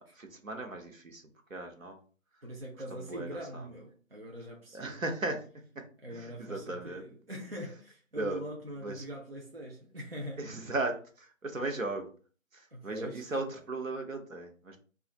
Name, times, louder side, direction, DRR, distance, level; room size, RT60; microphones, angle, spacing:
voice 1, 0.2-1.2 1.5-2.0 2.9-3.3 4.7-5.4 5.8-7.0 8.2-8.4 8.8-9.0 10.4-12.1 12.5-14.8, right 2 dB, 75° right, 0.9 m, -36 dB
voice 2, 2.4-5.0 6.0-10.5 12.7-13.6, equal, 45° right, 0.5 m, -43 dB
2.6 x 2.4 x 3.9 m
figure-of-eight pair, 175°, 40 cm